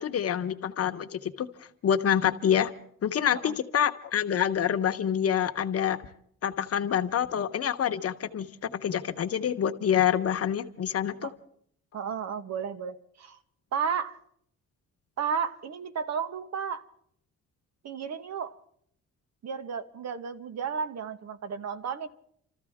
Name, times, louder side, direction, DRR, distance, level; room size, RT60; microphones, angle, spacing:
voice 1, 0.0-1.5 1.8-2.7 3.0-6.0 6.4-11.3, left 9 dB, 50° left, 8 dB, 1.0 m, -27 dB
voice 2, 11.9-13.4 13.7-14.2 15.2-16.9 17.8-18.6 19.4-22.1, right 6 dB, 60° right, 11 dB, 1.2 m, -33 dB
28.5 x 14.0 x 3.6 m, 0.66 s
cardioid pair, 90°, 30 cm